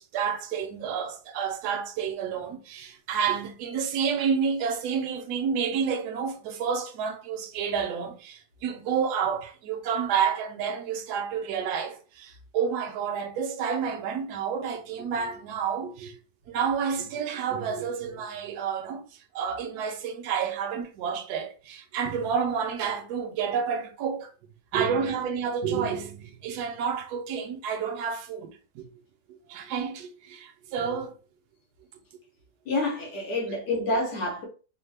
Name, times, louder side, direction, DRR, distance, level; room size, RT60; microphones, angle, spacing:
voice 1, 0.0-16.2 16.5-19.0 19.3-24.3 24.7-28.9 29.3-31.2, right 7 dB, 75° right, 1.1 m, -29 dB
voice 2, 32.7-34.5, left 2 dB, 80° left, 1.6 m, -28 dB
3.6 x 2.0 x 3.3 m
omnidirectional pair, 1.7 m